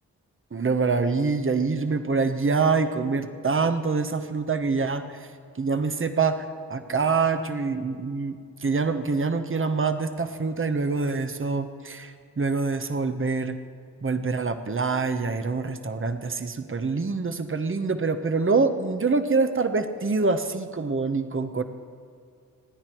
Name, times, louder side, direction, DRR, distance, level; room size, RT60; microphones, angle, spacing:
voice 1, 0.5-5.0 5.6-13.6 14.0-21.6, right 4 dB, 35° right, 9 dB, 1.2 m, -25 dB
26.0 x 9.9 x 4.6 m, 2.3 s
cardioid pair, 45°, 36 cm